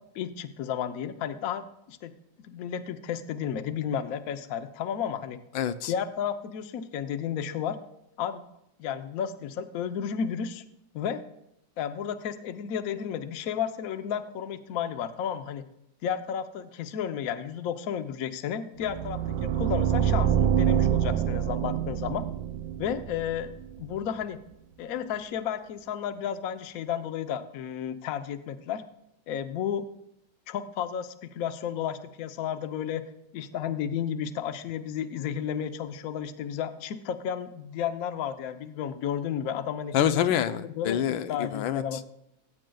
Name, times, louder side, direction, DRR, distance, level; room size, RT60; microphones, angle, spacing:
voice 1, 0.1-2.1 2.4-5.4 5.9-7.8 8.2-8.4 8.8-10.6 10.9-11.2 11.8-15.6 16.0-22.2 22.8-23.5 23.8-24.4 24.8-28.8 29.3-29.9 30.5-39.9 40.7-41.0 41.3-42.0, left 8 dB, 60° left, 9 dB, 1.1 m, -32 dB
voice 2, 5.5-5.9 39.9-41.8, left 10 dB, 90° left, 10 dB, 1.4 m, -26 dB
sound 1, 18.8-23.8, right 9 dB, 85° right, 1.4 m, -26 dB
18.5 x 8.9 x 2.3 m, 0.82 s
omnidirectional pair, 2.1 m